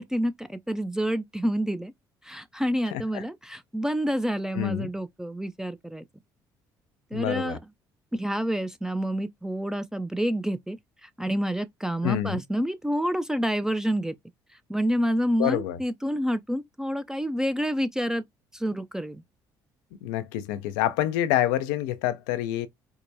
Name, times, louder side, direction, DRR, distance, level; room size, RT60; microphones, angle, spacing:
voice 1, 0.0-1.9 2.2-6.0 7.1-7.6 8.1-14.1 14.7-18.2 18.5-19.2, equal, 5° right, 0.5 m, -28 dB
voice 2, 2.9-3.2 4.5-4.9 7.1-7.6 12.0-12.4 15.4-15.8 20.0-22.7, left 13 dB, 80° left, 0.5 m, -27 dB
4.6 x 2.1 x 2.6 m
hypercardioid pair, 55°, 10 cm